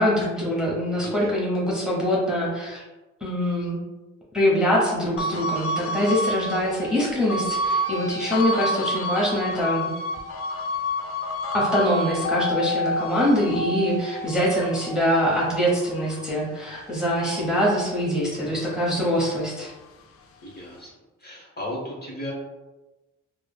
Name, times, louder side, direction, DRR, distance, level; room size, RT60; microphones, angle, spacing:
voice 1, 0.0-2.8 3.2-3.8 4.3-9.9 11.5-19.7, equal, ahead, -6 dB, 0.9 m, -24 dB
sound 1, 5.2-17.8 18.2-19.9, left 1 dB, 45° left, 0.4 m, -30 dB
voice 2, 20.4-20.9 21.2-22.3, left 1 dB, 30° left, -4 dB, 1.0 m, -35 dB
3.1 x 2.0 x 2.2 m, 1.1 s
supercardioid pair, 60°, 32 cm